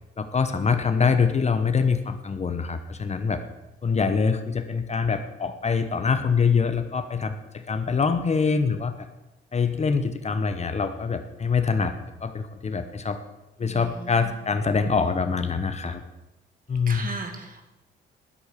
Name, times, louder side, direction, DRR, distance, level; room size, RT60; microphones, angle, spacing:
voice 1, 0.2-3.4 3.8-9.1 9.5-11.9 12.2-13.2 13.6-16.0 16.7-17.1, left 5 dB, 35° left, 9 dB, 1.0 m, -24 dB
voice 2, 13.6-14.3 16.9-17.6, right 3 dB, 45° right, 5 dB, 2.2 m, -37 dB
11.5 x 8.2 x 6.8 m, 0.97 s
cardioid pair, 90°, 20 cm